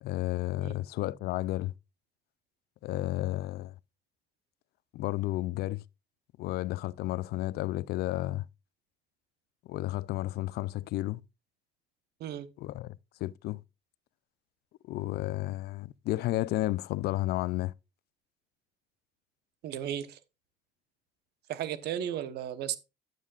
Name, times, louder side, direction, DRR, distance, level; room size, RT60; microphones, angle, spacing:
voice 1, 0.0-1.7 2.8-3.7 4.9-5.8 6.4-8.4 9.7-11.2 12.6-13.6 14.8-17.7, left 16 dB, 70° left, 0.4 m, -32 dB
voice 2, 19.6-20.2 21.5-22.8, right 10 dB, 75° right, 1.1 m, -34 dB
9.6 x 9.1 x 2.4 m
cardioid pair, 110°, 17 cm